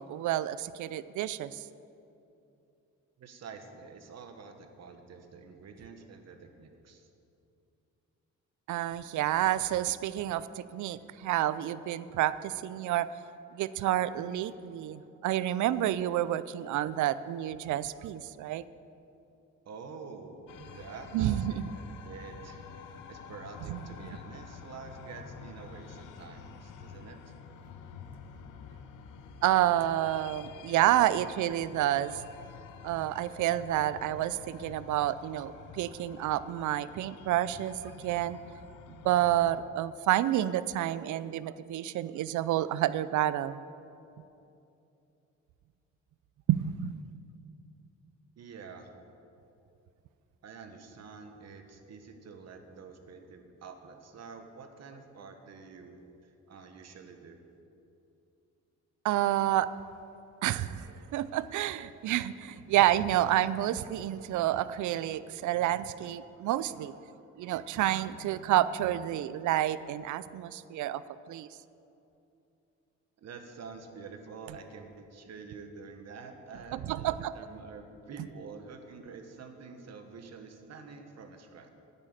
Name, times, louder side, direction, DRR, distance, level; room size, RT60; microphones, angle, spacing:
voice 1, 0.0-1.7 8.7-13.1 13.5-18.6 21.1-21.7 23.7-23.8 29.4-32.2 32.8-38.4 38.9-43.6 46.5-46.9 59.0-59.7 60.4-66.9 67.4-71.0 71.3-71.5 76.7-77.3, right 13 dB, 75° right, 16 dB, 0.5 m, -29 dB
voice 2, 3.2-7.1 19.6-27.3 48.4-48.9 50.4-57.4 73.2-81.7, right 5 dB, 60° right, 6 dB, 1.4 m, -48 dB
sound 1, 20.5-39.6, left 6 dB, 85° left, 0.9 m, -49 dB
9.8 x 7.6 x 8.8 m, 2.8 s
cardioid pair, 90°, 30 cm